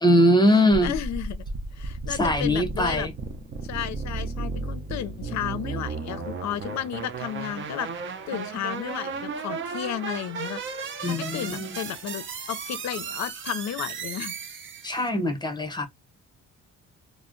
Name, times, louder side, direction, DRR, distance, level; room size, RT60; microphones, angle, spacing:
voice 1, 0.0-1.0 2.1-3.1 11.0-11.7 14.8-15.9, left 1 dB, 15° left, 0.9 m, -21 dB
sound 1, 0.7-15.1, right 4 dB, 40° right, 0.6 m, -34 dB
voice 2, 0.8-1.4 1.7-3.1 3.6-7.9 8.3-10.6 11.0-14.3, left 11 dB, 65° left, 0.5 m, -33 dB
2.2 x 2.0 x 3.7 m
cardioid pair, 90°, 30 cm